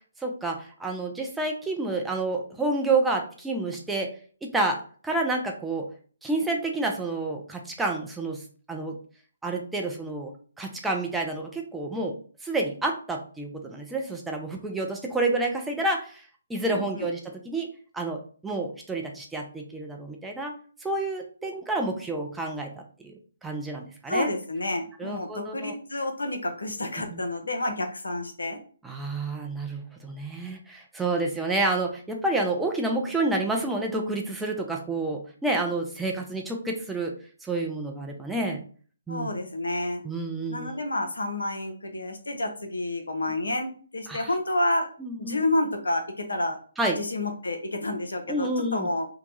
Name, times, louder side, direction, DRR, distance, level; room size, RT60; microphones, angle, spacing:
voice 1, 0.2-4.1 4.4-5.8 6.2-8.4 8.7-9.0 9.4-12.1 12.4-17.2 17.4-17.7 17.9-23.1 23.4-24.3 25.0-25.7 27.1-27.2 28.8-37.1 37.4-38.6 39.1-39.3 40.0-40.8 44.1-44.3 45.0-45.4 46.8-47.0 48.3-48.9, right 2 dB, 5° right, 1 dB, 0.5 m, -29 dB
voice 2, 16.7-17.1 24.1-28.6 39.1-40.0 40.5-44.9 45.2-46.6 47.0-49.1, left 1 dB, 75° left, 4 dB, 0.8 m, -29 dB
2.9 x 2.2 x 3.9 m, 0.42 s
figure-of-eight pair, 140°, 0 cm